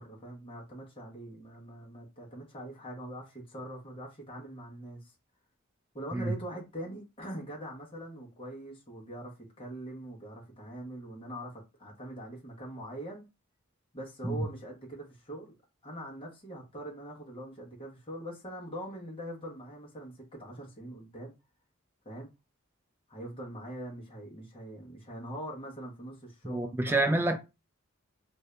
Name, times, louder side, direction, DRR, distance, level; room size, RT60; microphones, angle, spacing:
voice 1, 0.0-5.1 5.9-13.3 13.9-15.5 15.8-21.3 22.0-22.3 23.1-27.4, right 1 dB, 25° left, 1.1 m, -43 dB
voice 2, 26.4-27.4, right 2 dB, 10° right, 0.3 m, -28 dB
2.6 x 2.6 x 3.3 m
head